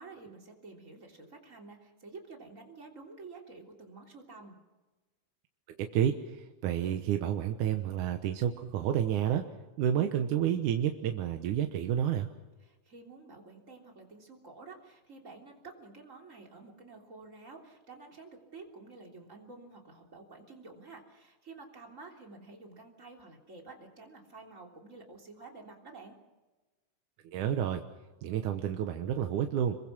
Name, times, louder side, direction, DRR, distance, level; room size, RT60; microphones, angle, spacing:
voice 1, 0.0-4.6 12.6-26.2, right 3 dB, 25° right, 2 dB, 3.4 m, -50 dB
voice 2, 5.9-9.4 9.8-12.3 27.2-27.8 28.2-29.8, right 10 dB, 75° right, 5 dB, 2.5 m, -30 dB
27.0 x 22.5 x 6.1 m, 1.2 s
omnidirectional pair, 3.7 m